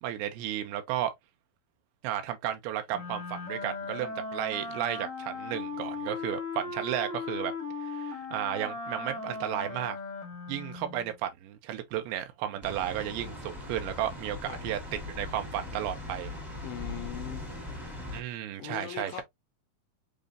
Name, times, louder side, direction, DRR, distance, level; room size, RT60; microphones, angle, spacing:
voice 1, 0.0-1.1 2.0-7.5 7.8-10.0 10.5-16.3 18.1-19.2, right 11 dB, 80° right, 2.5 m, -33 dB
Wind instrument woodwind instrument, 2.9-11.1, left 3 dB, 55° left, 0.8 m, -37 dB
sound 1, 12.6-18.2, left 2 dB, ahead, 0.6 m, -40 dB
voice 2, 16.6-17.4 18.6-19.2, left 12 dB, 80° left, 2.2 m, -39 dB
6.8 x 2.4 x 2.5 m
omnidirectional pair, 4.4 m